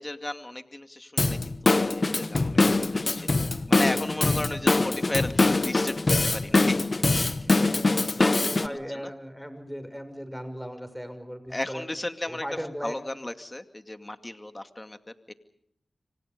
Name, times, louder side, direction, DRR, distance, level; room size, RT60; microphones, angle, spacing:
voice 1, 0.0-3.4 3.7-7.5 7.9-9.1 11.5-12.5 12.8-15.0, left 1 dB, 25° left, 7 dB, 2.4 m, -35 dB
Drum kit / Drum, 1.2-8.7, left 3 dB, 45° left, 1.2 m, -23 dB
voice 2, 7.4-8.0 8.4-11.8 12.3-12.9, equal, ahead, 9 dB, 6.2 m, -37 dB
28.0 x 25.5 x 5.4 m, 0.73 s
cardioid pair, 40°, 0 cm